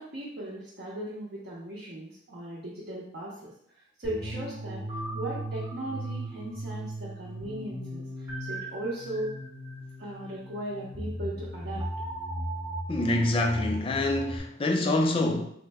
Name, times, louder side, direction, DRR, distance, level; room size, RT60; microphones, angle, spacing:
voice 1, 0.0-3.5 4.0-9.3 10.0-11.8, right 1 dB, 55° right, 0.6 m, -37 dB
sound 1, 4.0-14.4, right 1 dB, 15° right, 0.7 m, -37 dB
voice 2, 12.9-15.4, left 2 dB, 30° left, 0.3 m, -26 dB
3.4 x 2.0 x 3.4 m
head